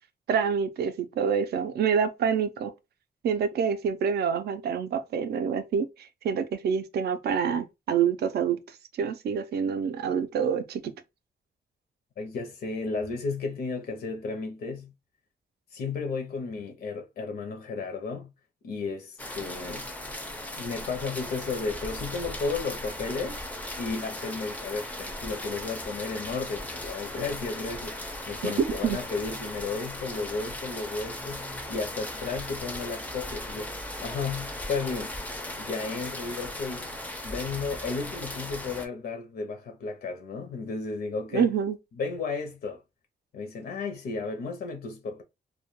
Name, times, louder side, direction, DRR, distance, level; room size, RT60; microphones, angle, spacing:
voice 1, 0.3-2.7 3.2-8.6 9.0-10.9 28.4-28.5 28.8-29.0 41.3-41.8, right 7 dB, 75° right, 0.4 m, -27 dB
voice 2, 12.2-14.9 15.7-18.3 18.6-19.9 20.6-23.5 23.8-33.7 34.0-35.1 35.6-36.9 37.2-41.5 41.9-42.8 43.3-45.2, left 4 dB, 70° left, 0.5 m, -33 dB
sound 1, 19.2-38.9, left 1 dB, 10° left, 0.4 m, -37 dB
2.1 x 2.1 x 2.9 m
wide cardioid pair, 135°, 17 cm